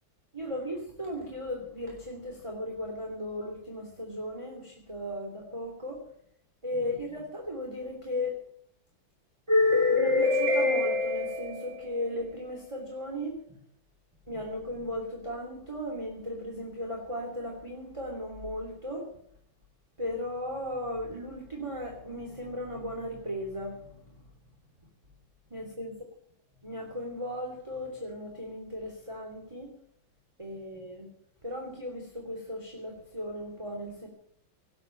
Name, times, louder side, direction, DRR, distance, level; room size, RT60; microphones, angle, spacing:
voice 1, 0.3-6.0 6.6-8.4 9.5-13.6 14.3-19.1 20.0-24.1 25.5-25.9 26.6-29.7 30.4-31.1 31.4-34.1, left 2 dB, 15° right, 0 dB, 3.0 m, -33 dB
19.0 x 8.0 x 9.0 m, 0.67 s
omnidirectional pair, 2.4 m